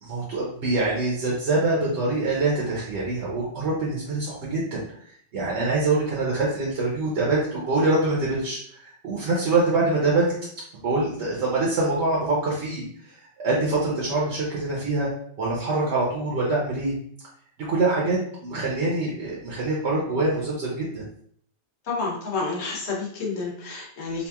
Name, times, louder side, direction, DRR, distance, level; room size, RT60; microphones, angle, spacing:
voice 1, 0.0-10.3 10.8-15.1 15.4-16.9 17.7-21.0, right 2 dB, 75° right, -5 dB, 1.0 m, -25 dB
voice 2, 21.8-24.3, left 3 dB, 70° left, -2 dB, 1.0 m, -29 dB
2.8 x 2.5 x 2.3 m, 0.63 s
omnidirectional pair, 1.2 m